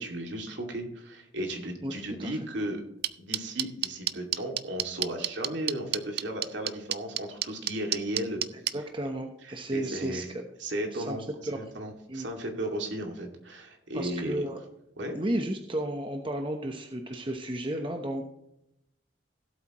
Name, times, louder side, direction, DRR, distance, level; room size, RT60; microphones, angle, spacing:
voice 1, 0.0-2.8 3.2-8.8 9.5-10.3 10.6-11.2 11.6-14.3 15.0-15.2, right 1 dB, 70° right, 2 dB, 2.4 m, -35 dB
voice 2, 1.8-2.4 8.7-10.4 10.9-11.2 11.5-11.6 12.1-12.3 13.9-14.6 15.1-18.3, right 1 dB, 25° right, 4 dB, 0.9 m, -33 dB
sound 1, 3.0-8.7, right 13 dB, 55° right, 0.5 m, -28 dB
16.5 x 8.2 x 3.0 m, 0.81 s
head